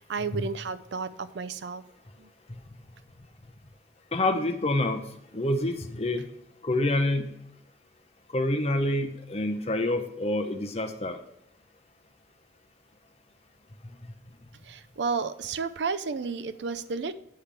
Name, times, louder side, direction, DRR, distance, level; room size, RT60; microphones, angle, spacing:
voice 1, 0.0-1.8 2.2-2.3 14.6-17.1, right 5 dB, 75° right, 13 dB, 0.5 m, -32 dB
voice 2, 4.1-5.0 5.3-6.3 6.6-7.3 8.3-11.2, left 1 dB, 35° left, 7 dB, 0.7 m, -27 dB
8.5 x 5.8 x 3.3 m, 0.82 s
head